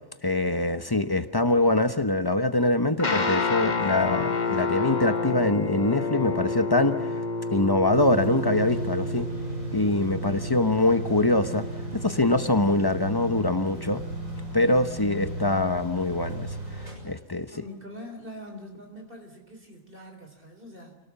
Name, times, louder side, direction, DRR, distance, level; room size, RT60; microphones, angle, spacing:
voice 1, 0.2-7.2 7.5-9.3 9.7-11.7 11.9-14.0 14.5-16.5 17.0-17.5, left 2 dB, 20° left, 1.0 m, -24 dB
Guitar, 3.0-14.4, left 3 dB, 35° left, 1.3 m, -30 dB
sound 1, 7.9-17.0, right 2 dB, 90° right, 7.4 m, -35 dB
voice 2, 17.5-21.0, equal, 40° right, 3.8 m, -43 dB
28.5 x 18.5 x 7.1 m
omnidirectional pair, 1.4 m